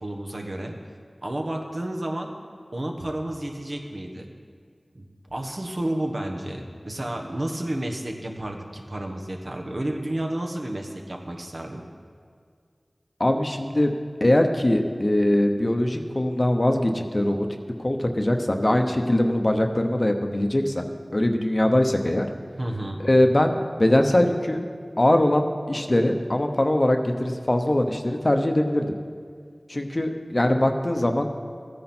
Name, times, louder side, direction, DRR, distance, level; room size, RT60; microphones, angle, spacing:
voice 1, 0.0-0.7 1.2-2.3 2.7-4.3 4.9-5.0 5.3-11.8 22.6-23.0, right 1 dB, 60° right, 2 dB, 1.2 m, -31 dB
voice 2, 13.2-13.9 14.2-17.5 17.8-22.3 23.0-24.6 25.0-28.9 29.7-31.3, left 1 dB, 40° left, 5 dB, 0.9 m, -22 dB
14.5 x 9.6 x 4.4 m, 2.1 s
wide cardioid pair, 45°, 0 cm